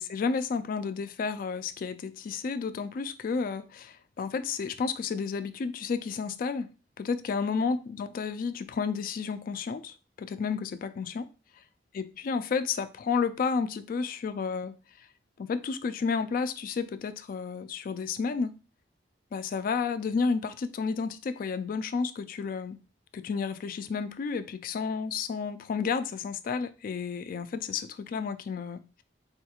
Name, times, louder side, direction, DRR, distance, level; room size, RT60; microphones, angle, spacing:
voice 1, 0.0-6.7 7.0-11.3 11.9-14.7 15.4-18.5 19.3-22.8 23.1-29.0, left 5 dB, 50° left, 0.3 m, -31 dB
4.1 x 2.3 x 2.8 m
head